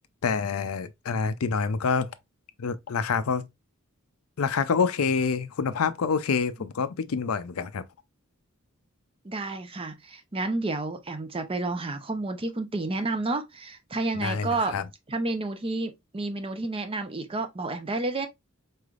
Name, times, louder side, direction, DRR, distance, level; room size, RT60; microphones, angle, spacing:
voice 1, 0.2-2.1 2.6-3.5 4.4-7.8 14.1-14.9, left 5 dB, 80° left, 0.5 m, -27 dB
voice 2, 9.2-14.7 15.1-18.3, right 2 dB, 25° right, 0.6 m, -30 dB
4.5 x 3.3 x 2.4 m
head